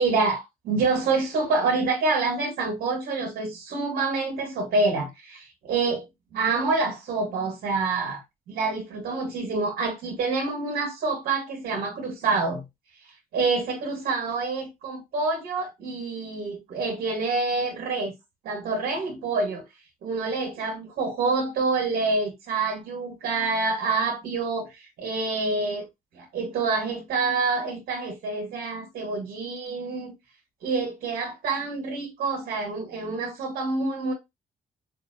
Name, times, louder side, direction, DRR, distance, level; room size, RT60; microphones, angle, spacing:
voice 1, 0.0-6.0 6.3-8.2 8.5-12.6 13.3-18.1 18.4-19.6 20.0-25.9 26.1-30.1 30.6-34.1, right 3 dB, 80° right, 2.3 m, -27 dB
6.5 x 2.8 x 2.9 m
cardioid pair, 85°, 15 cm